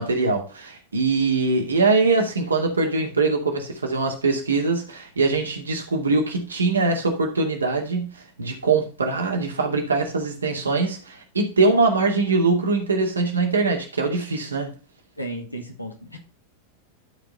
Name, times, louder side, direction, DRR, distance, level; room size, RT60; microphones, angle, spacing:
voice 1, 0.0-14.7, right 3 dB, 75° right, 2.4 m, -22 dB
voice 2, 15.2-16.2, right 1 dB, 85° left, 2.1 m, -34 dB
12.0 x 4.9 x 4.2 m
figure-of-eight pair, 90°, 0 cm